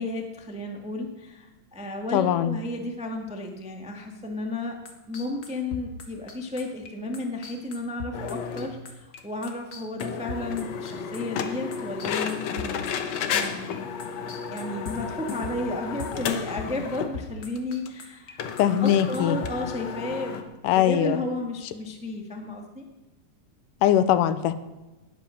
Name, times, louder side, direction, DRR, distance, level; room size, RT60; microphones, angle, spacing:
voice 1, 0.0-4.8 5.1-22.8, left 2 dB, 10° right, 2 dB, 0.3 m, -33 dB
voice 2, 2.1-2.6 18.6-19.4 20.6-21.2 23.8-24.5, left 11 dB, 85° left, 13 dB, 2.3 m, -21 dB
sound 1, 4.8-13.7 14.0-16.3 16.6-16.9 17.1-18.3 18.6-19.6, left 5 dB, 40° left, 1.5 m, -39 dB
sound 2, 8.1-8.7 9.2-9.3 9.5-9.6 10.0-17.2 17.6-17.7 17.9-18.0 18.4-20.4, left 7 dB, 65° left, 2.0 m, -32 dB
19.0 x 8.2 x 6.4 m, 1.1 s
omnidirectional pair, 3.8 m